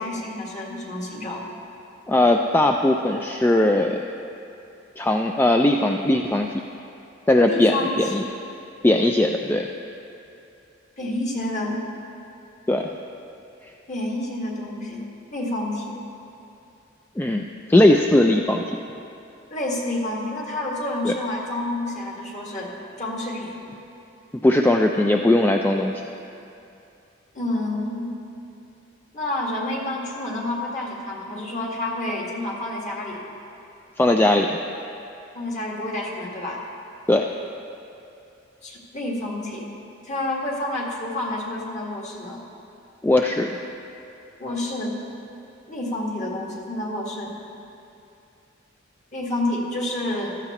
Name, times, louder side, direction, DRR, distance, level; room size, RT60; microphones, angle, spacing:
voice 1, 0.0-1.5 7.4-8.3 11.0-11.8 13.9-15.1 15.3-16.0 19.5-22.7 23.0-23.6 27.3-28.1 29.1-33.2 35.3-36.6 38.6-39.7 40.0-42.4 44.4-45.0 45.7-47.4 49.1-50.4, left 1 dB, 40° left, -2 dB, 1.8 m, -29 dB
voice 2, 2.1-4.0 5.0-6.5 7.3-8.2 8.8-9.7 12.7-12.9 17.2-17.4 17.7-18.8 21.0-21.1 24.4-26.0 34.0-34.6 37.1-37.3 43.0-43.6, left 1 dB, 10° left, 2 dB, 0.3 m, -19 dB
15.0 x 12.5 x 3.0 m, 2.7 s
head